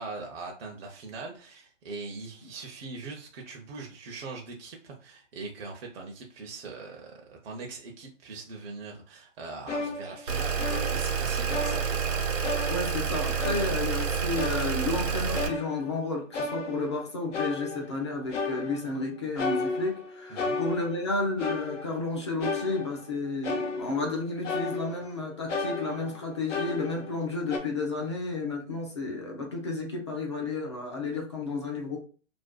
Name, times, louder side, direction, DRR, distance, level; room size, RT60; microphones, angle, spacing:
voice 1, 0.0-12.5 20.3-20.6, right 3 dB, 50° right, 1 dB, 0.6 m, -41 dB
sound 1, 9.7-11.2 11.5-12.2 12.4-13.1 13.4-14.0 14.4-16.0 16.3-17.1 17.3-18.0 18.3-19.0 19.4-21.1 21.4-22.1 22.4-23.1 23.4-24.2 24.4-25.2 25.5-27.2 27.5-27.6, left 3 dB, 70° left, 0.8 m, -34 dB
sound 2, 10.3-15.5, right 6 dB, 85° right, 0.9 m, -28 dB
voice 2, 12.7-32.0, left 3 dB, 25° left, 0 dB, 0.3 m, -32 dB
2.5 x 2.2 x 2.2 m, 0.39 s
hypercardioid pair, 135°, 38 cm